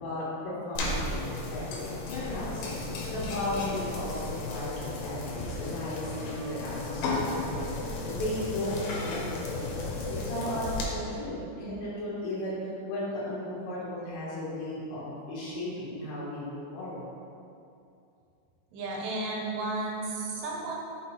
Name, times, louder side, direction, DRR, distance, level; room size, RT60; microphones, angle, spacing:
voice 1, 0.0-1.7 2.1-2.7 3.0-4.2 4.5-12.5 12.9-17.1, left 1 dB, 90° left, -10 dB, 3.2 m, -35 dB
sound 1, 0.8-10.8, left 2 dB, 75° left, 2.3 m, -34 dB
voice 2, 18.7-20.8, right 2 dB, 75° right, -3 dB, 2.4 m, -33 dB
6.6 x 4.0 x 4.4 m, 2.6 s
omnidirectional pair, 4.4 m